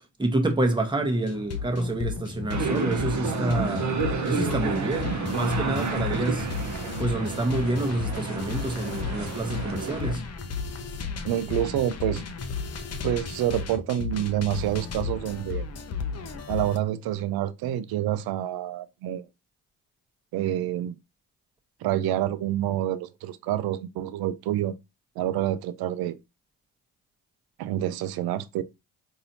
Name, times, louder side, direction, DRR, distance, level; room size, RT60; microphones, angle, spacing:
voice 1, 0.0-3.9 4.2-6.5 7.0-10.3, right 2 dB, 10° right, 1.0 m, -28 dB
sound 1, 1.3-16.8, left 5 dB, 35° left, 0.7 m, -34 dB
sound 2, 2.5-10.1, right 4 dB, 40° right, 0.9 m, -30 dB
voice 2, 11.2-12.2 13.0-15.7 16.5-19.3 20.3-21.0 21.8-24.7 25.2-26.2 27.6-28.6, right 12 dB, 55° right, 0.5 m, -27 dB
4.0 x 2.8 x 2.7 m
hypercardioid pair, 55°, 45 cm